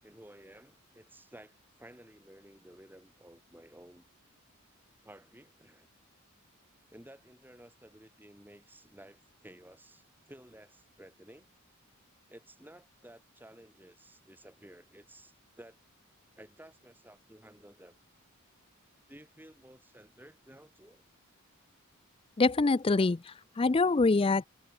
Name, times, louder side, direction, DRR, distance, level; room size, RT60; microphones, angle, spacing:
voice 1, 0.0-4.1 5.0-5.9 6.9-11.5 12.3-15.8 16.4-18.0 19.1-21.0, right 1 dB, 10° right, 5.4 m, -54 dB
voice 2, 22.4-24.4, left 3 dB, 25° left, 0.4 m, -25 dB
head